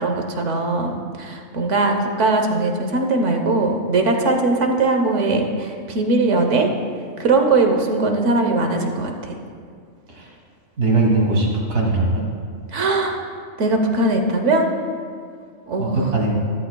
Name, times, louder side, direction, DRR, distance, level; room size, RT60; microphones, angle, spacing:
voice 1, 0.0-6.7 7.2-9.3 12.7-13.2 13.6-14.7 15.7-16.0, right 2 dB, 65° right, 3 dB, 1.3 m, -20 dB
voice 2, 10.8-12.3 15.8-16.4, right 2 dB, 90° right, -1 dB, 2.3 m, -20 dB
14.0 x 13.5 x 2.3 m, 2.2 s
omnidirectional pair, 1.4 m